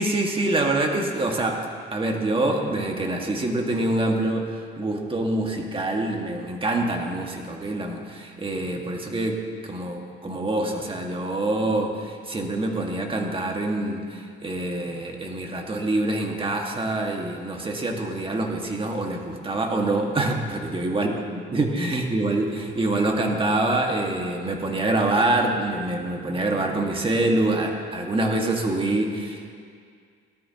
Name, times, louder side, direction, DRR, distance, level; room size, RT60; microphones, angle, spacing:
voice 1, 0.0-1.7 1.9-21.2 21.5-29.5, right 2 dB, 25° right, 1 dB, 1.8 m, -25 dB
18.5 x 13.0 x 3.0 m, 2.2 s
cardioid pair, 90°, 20 cm